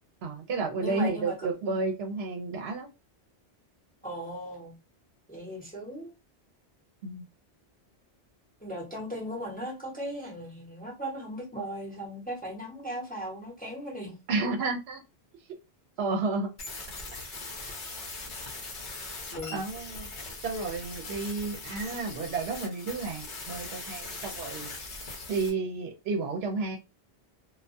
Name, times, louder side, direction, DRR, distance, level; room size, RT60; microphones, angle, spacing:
voice 1, 0.2-2.9 7.0-7.3 14.3-15.0 16.0-16.5 19.5-20.1 20.4-24.7 25.3-26.8, right 3 dB, 75° right, 0.8 m, -31 dB
voice 2, 0.8-1.3 4.0-4.7 5.3-6.1 8.6-14.2 19.3-19.6, equal, 10° left, 0.7 m, -37 dB
sound 1, 16.6-25.5, left 3 dB, 55° left, 0.8 m, -40 dB
2.2 x 2.2 x 2.5 m
omnidirectional pair, 1.1 m